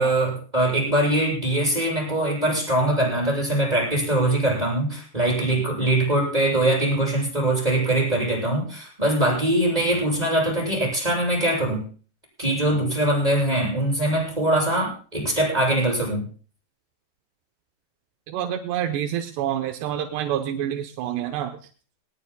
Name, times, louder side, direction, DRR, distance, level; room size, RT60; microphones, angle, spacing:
voice 1, 0.0-11.8 12.4-16.3, right 1 dB, 10° right, -3 dB, 7.8 m, -22 dB
voice 2, 18.3-21.6, right 10 dB, 85° right, 5 dB, 3.0 m, -27 dB
21.5 x 19.0 x 2.3 m, 0.39 s
omnidirectional pair, 4.8 m